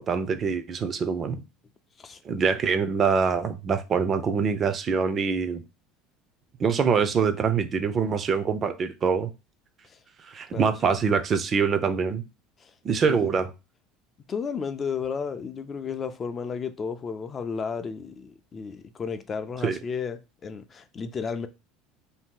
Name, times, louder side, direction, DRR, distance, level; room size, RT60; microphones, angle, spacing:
voice 1, 0.0-1.4 2.2-5.6 6.6-9.3 10.3-12.2 12.8-13.5 19.6-19.8, right 6 dB, 35° right, 0.4 m, -24 dB
voice 2, 10.5-11.0 12.6-12.7 13.1-13.3 14.3-21.5, left 5 dB, 30° left, 0.4 m, -33 dB
2.7 x 2.2 x 3.7 m
supercardioid pair, 105°, 0 cm